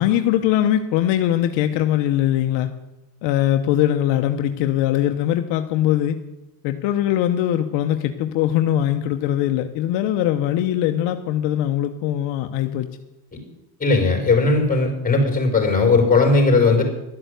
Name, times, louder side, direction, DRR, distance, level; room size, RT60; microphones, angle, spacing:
voice 1, 0.0-2.7 3.2-6.2 6.6-12.9, left 12 dB, 75° left, 7 dB, 1.0 m, -21 dB
voice 2, 13.8-16.8, left 3 dB, 20° left, 3 dB, 4.4 m, -17 dB
12.0 x 8.0 x 8.0 m, 0.96 s
supercardioid pair, 100°, 44 cm